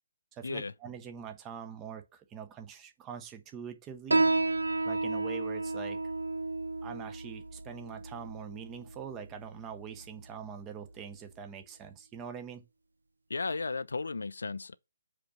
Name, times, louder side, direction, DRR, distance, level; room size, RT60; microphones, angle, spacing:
voice 1, 0.3-4.3 4.8-6.0 6.8-12.6, right 7 dB, 15° right, 0.7 m, -44 dB
Piano, 4.1-11.2, right 2 dB, 70° right, 0.4 m, -33 dB
voice 2, 13.3-14.7, left 4 dB, 65° left, 0.3 m, -34 dB
4.9 x 4.4 x 5.9 m
figure-of-eight pair, 135°, 0 cm